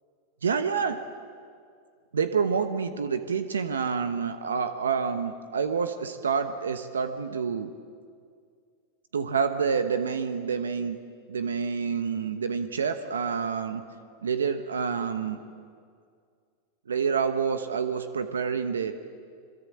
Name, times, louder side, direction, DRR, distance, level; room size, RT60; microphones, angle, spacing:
voice 1, 0.4-1.0 2.1-7.7 9.1-11.0 11.3-13.8 14.2-15.4 16.9-18.9, right 6 dB, 90° right, 10 dB, 1.1 m, -28 dB
22.0 x 22.0 x 8.6 m, 2.2 s
hypercardioid pair, 100°, 0 cm